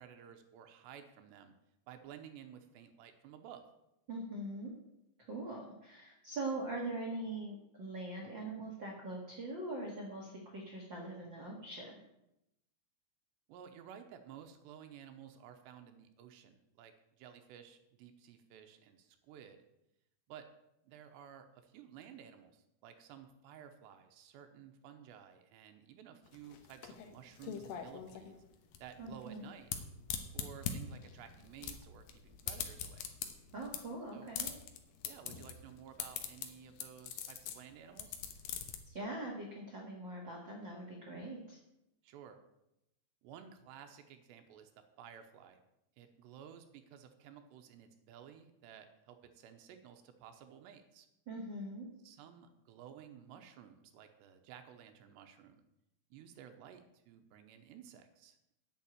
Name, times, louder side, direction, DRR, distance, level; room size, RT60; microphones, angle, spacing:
voice 1, 0.0-1.5 1.9-3.6 13.5-19.6 20.3-20.4 20.8-28.4 28.8-29.7 30.3-33.1 34.1-34.3 35.0-38.2 42.0-42.4 43.2-44.7 45.0-45.6 46.0-51.1 52.0-55.6 56.1-58.5, right 9 dB, 80° right, 7 dB, 2.9 m, -54 dB
voice 2, 4.1-4.7 5.3-12.0 29.0-29.4 33.5-34.5 38.8-41.6 51.3-51.9, right 2 dB, 65° right, -2 dB, 1.1 m, -42 dB
sound 1, 26.3-38.8, left 8 dB, 70° left, 2.4 m, -43 dB
8.4 x 7.6 x 8.8 m, 0.85 s
omnidirectional pair, 5.1 m